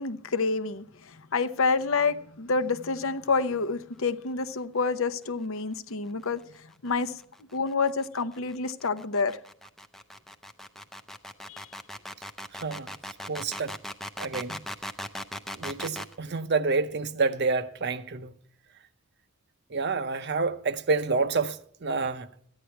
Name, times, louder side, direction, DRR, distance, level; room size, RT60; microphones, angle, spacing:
voice 1, 0.0-6.4 6.8-7.1 7.5-9.4 11.5-11.7, left 4 dB, 65° left, 0.8 m, -28 dB
sound 1, 6.9-16.1, equal, ahead, 0.5 m, -39 dB
voice 2, 12.5-12.9 13.3-13.7 14.2-14.6 15.5-18.3 19.7-22.3, right 4 dB, 50° right, 0.7 m, -28 dB
14.5 x 9.9 x 4.5 m
head